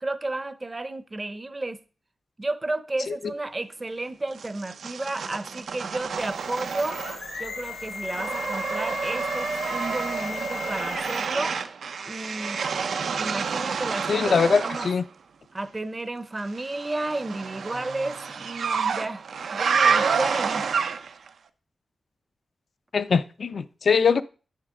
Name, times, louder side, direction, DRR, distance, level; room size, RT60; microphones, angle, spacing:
voice 1, 0.0-1.8 2.4-7.0 7.4-11.6 12.1-12.6 13.1-14.9 15.5-19.2 19.5-20.7, right 2 dB, 20° right, 0.6 m, -32 dB
sound 1, 4.4-7.4 7.7-15.0 16.6-21.3, right 6 dB, 90° right, 0.5 m, -29 dB
sound 2, 6.1-11.4, left 4 dB, 85° left, 3.1 m, -36 dB
voice 2, 14.1-15.0 22.9-24.2, left 5 dB, 60° left, 0.4 m, -22 dB
9.9 x 6.6 x 3.7 m
wide cardioid pair, 160°, 0 cm